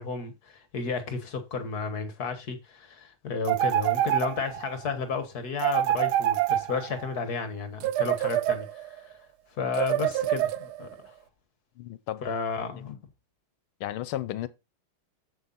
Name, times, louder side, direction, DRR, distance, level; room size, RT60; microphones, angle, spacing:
voice 1, 0.0-9.1 9.6-11.1 12.2-13.0, left 5 dB, 50° left, 1.7 m, -33 dB
sound 1, 3.5-4.7 5.6-7.1 7.8-9.0 9.7-10.9, right 13 dB, 85° right, 1.5 m, -26 dB
voice 2, 11.8-12.2 12.8-13.0 13.8-14.5, left 13 dB, 80° left, 1.5 m, -34 dB
8.0 x 7.5 x 4.0 m
omnidirectional pair, 2.3 m